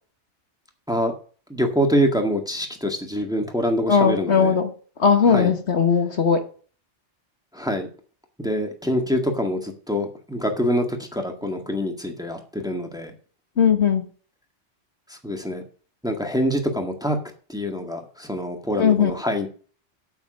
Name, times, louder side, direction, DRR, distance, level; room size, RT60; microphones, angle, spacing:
voice 1, 1.5-4.6 5.2-5.5 7.5-7.9 8.4-13.1 15.1-15.6 16.0-17.2 17.5-19.5, equal, 5° right, 4 dB, 1.8 m, -25 dB
voice 2, 3.9-4.7 5.0-6.4 13.6-14.1 18.8-19.1, left 6 dB, 65° left, 6 dB, 1.6 m, -18 dB
8.8 x 8.6 x 6.5 m, 0.41 s
omnidirectional pair, 1.3 m